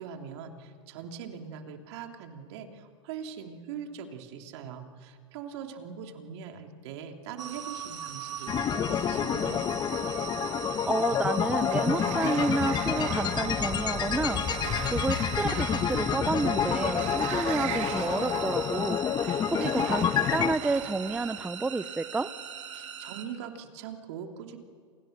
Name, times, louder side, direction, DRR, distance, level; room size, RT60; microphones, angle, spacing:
voice 1, 0.0-9.6 22.7-24.6, right 7 dB, 65° right, 4 dB, 3.2 m, -42 dB
sound 1, 7.4-23.2, right 8 dB, 80° right, 6.6 m, -40 dB
sound 2, 8.5-20.6, left 8 dB, 25° left, 1.2 m, -28 dB
voice 2, 10.9-14.4 14.9-22.3, right 3 dB, 10° right, 14 dB, 0.6 m, -30 dB
Sliding door, 11.0-21.5, right 10 dB, 45° right, 3.3 m, -41 dB
29.5 x 27.0 x 6.7 m, 2.1 s
hypercardioid pair, 105°, 16 cm